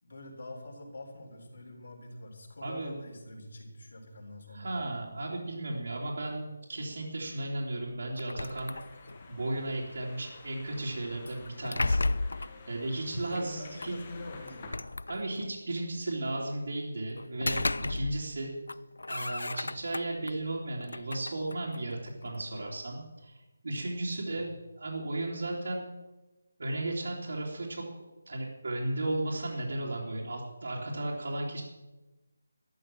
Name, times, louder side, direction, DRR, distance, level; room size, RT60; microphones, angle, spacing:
voice 1, 0.0-4.7 13.0-14.7 24.3-24.4, left 1 dB, 55° left, 2 dB, 3.9 m, -45 dB
voice 2, 2.6-2.9 4.5-8.7 9.3-13.9 15.1-18.5 19.1-23.4 23.6-25.9 26.6-27.8 28.3-31.6, right 2 dB, 60° right, -4 dB, 3.0 m, -35 dB
sound 1, 8.2-9.3 11.3-12.6 13.8-13.9 14.5-15.6 17.2-18.4 18.7-20.3 20.8-22.4, left 2 dB, 80° left, 0.5 m, -34 dB
sound 2, 8.5-14.7, left 3 dB, 20° left, 1.8 m, -50 dB
13.0 x 10.5 x 7.7 m, 1.1 s
figure-of-eight pair, 175°, 0 cm